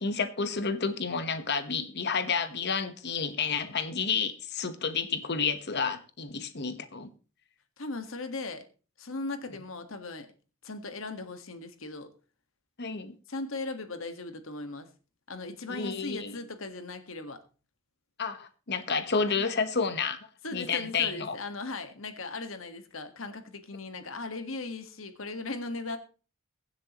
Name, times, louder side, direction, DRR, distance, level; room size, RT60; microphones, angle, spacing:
voice 1, 0.0-7.1 12.8-13.1 15.7-16.3 18.2-20.2 20.5-21.4, left 5 dB, 55° left, 1.2 m, -30 dB
voice 2, 7.8-8.6 9.0-10.3 10.6-12.1 13.3-14.9 15.3-17.4 19.3-19.5 20.4-26.0, left 3 dB, 70° left, 1.6 m, -38 dB
22.5 x 7.5 x 3.0 m
head